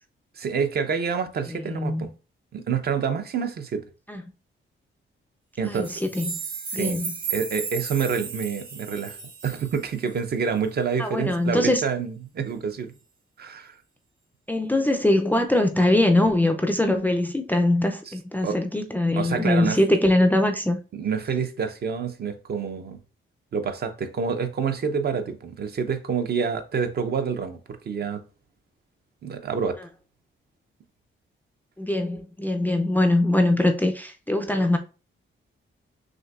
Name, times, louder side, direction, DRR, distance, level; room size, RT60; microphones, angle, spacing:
voice 1, 0.4-2.1 2.5-3.8 5.6-6.0 6.7-7.0 7.3-9.2 9.4-12.9 13.4-13.8 18.1-18.2 18.4-18.6 19.1-19.8 20.9-23.0 23.5-27.6 27.9-28.2 29.2-29.8, right 6 dB, 50° right, 0.5 m, -27 dB
voice 2, 1.5-2.0 4.1-4.2 5.7-5.9 6.2-6.4 6.7-7.1 11.0-11.8 14.5-20.8 31.8-34.8, left 1 dB, 10° left, 0.3 m, -22 dB
sound 1, 5.7-10.2, right 5 dB, 70° right, 2.0 m, -34 dB
6.1 x 2.6 x 2.4 m
wide cardioid pair, 135°, 21 cm